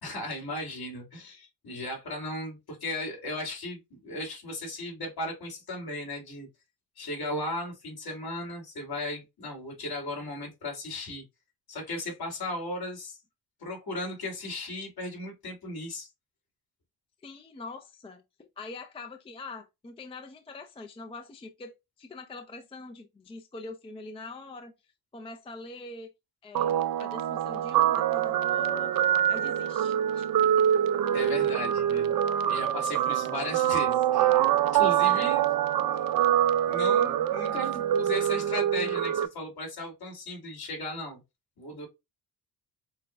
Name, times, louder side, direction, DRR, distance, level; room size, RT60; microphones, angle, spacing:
voice 1, 0.0-6.5 7.0-11.2 11.7-13.2 13.6-16.1 31.1-32.2 32.4-35.4 36.7-41.2 41.6-41.9, left 1 dB, 55° left, 2.4 m, -36 dB
voice 2, 17.2-24.7 25.1-26.1 26.4-30.7, left 3 dB, 15° left, 0.4 m, -44 dB
Guitar, 26.5-39.3, right 10 dB, 55° right, 0.5 m, -25 dB
6.3 x 2.1 x 2.6 m
cardioid pair, 100°, 44 cm